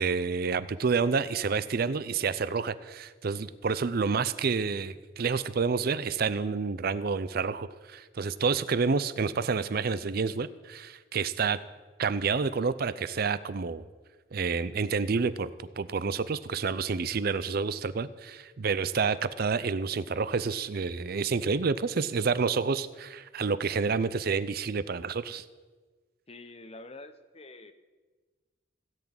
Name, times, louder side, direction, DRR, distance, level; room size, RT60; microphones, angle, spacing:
voice 1, 0.0-11.6 12.0-13.9 14.3-15.5 15.8-25.4, right 5 dB, 50° right, 15 dB, 0.5 m, -29 dB
voice 2, 26.3-27.7, left 2 dB, 30° left, 11 dB, 0.7 m, -47 dB
16.5 x 6.0 x 8.8 m, 1.4 s
head